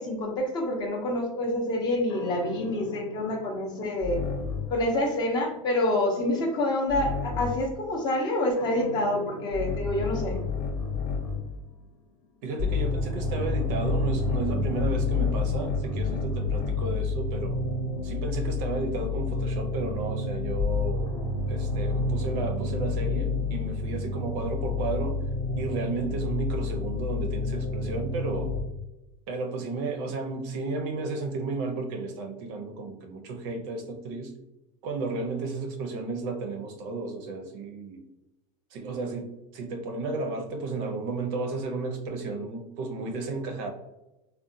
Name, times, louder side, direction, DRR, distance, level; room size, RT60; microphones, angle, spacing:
voice 1, 0.0-4.2 4.7-10.4, left 1 dB, 25° left, 2 dB, 0.5 m, -27 dB
sound 1, 2.1-4.9 6.9-7.7 8.6-11.6 13.2-17.1, left 5 dB, 85° left, 0.6 m, -32 dB
voice 2, 12.4-17.6 18.0-21.2 21.5-25.2 25.6-28.5 29.3-34.3 34.8-38.0 38.7-43.7, right 3 dB, 50° right, 5 dB, 0.5 m, -33 dB
sound 2, 12.6-28.6, left 3 dB, 50° left, 0.8 m, -29 dB
3.8 x 2.1 x 2.6 m, 0.96 s
supercardioid pair, 170°, 16 cm